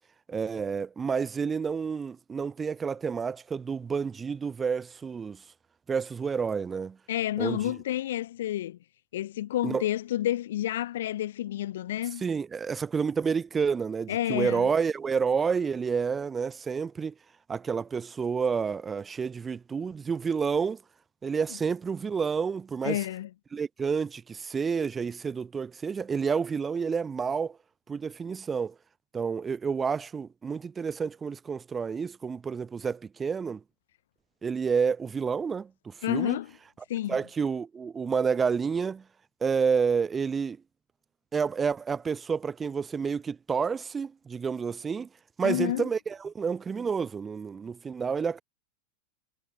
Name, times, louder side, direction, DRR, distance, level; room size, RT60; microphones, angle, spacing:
voice 1, 0.3-5.4 5.9-7.0 7.4-7.7 9.6-9.8 12.2-17.1 17.5-20.8 21.2-23.0 23.5-27.6 27.9-28.7 29.1-33.6 34.4-36.4 37.1-39.0 39.4-40.6 41.3-45.1 45.4-48.4, right 6 dB, 15° right, 0.4 m, -29 dB
voice 2, 7.1-8.8 9.1-12.3 14.1-14.7 22.8-23.3 36.0-36.5 36.9-37.2 45.4-45.9, left 13 dB, 60° left, 0.8 m, -30 dB
figure-of-eight pair, 90°, 0 cm